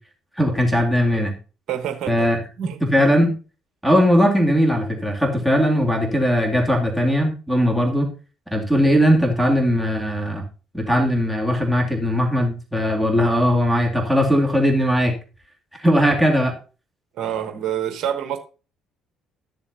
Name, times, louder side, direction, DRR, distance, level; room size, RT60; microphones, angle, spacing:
voice 1, 0.4-1.3 2.1-2.4 2.9-3.3 3.8-8.1 8.5-10.4 10.7-15.1 15.8-16.6, equal, ahead, 2.5 m, -19 dB
voice 2, 1.7-2.3 2.6-2.8 17.2-18.4, right 10 dB, 60° right, 1.2 m, -27 dB
13.0 x 7.1 x 2.7 m
hypercardioid pair, 55°, 0 cm